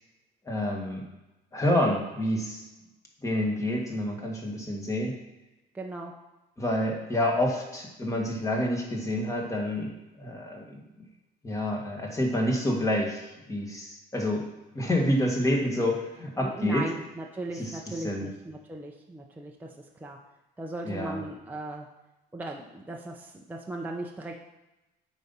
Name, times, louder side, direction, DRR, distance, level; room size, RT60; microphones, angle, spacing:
voice 1, 0.5-1.0 1.5-2.7 3.2-5.2 6.6-10.8 11.4-14.5 14.7-16.9 17.6-18.3 20.8-21.2, left 1 dB, 15° left, 0 dB, 1.8 m, -28 dB
voice 2, 5.7-6.1 16.4-19.7 19.9-20.2 20.6-21.9 22.3-24.4, right 2 dB, 10° right, 0 dB, 0.7 m, -37 dB
8.3 x 4.1 x 5.5 m, 1.0 s
cardioid pair, 120°, 18 cm